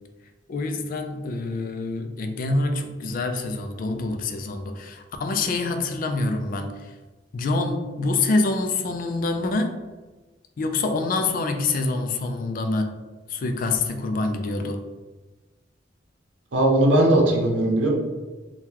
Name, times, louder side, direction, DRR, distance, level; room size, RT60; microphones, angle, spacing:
voice 1, 0.5-6.9 7.3-9.8 10.6-12.9 13.3-14.8, left 3 dB, 50° left, 6 dB, 0.3 m, -26 dB
voice 2, 16.5-17.9, right 1 dB, 85° right, 0 dB, 0.7 m, -18 dB
2.8 x 2.2 x 3.6 m, 1.2 s
head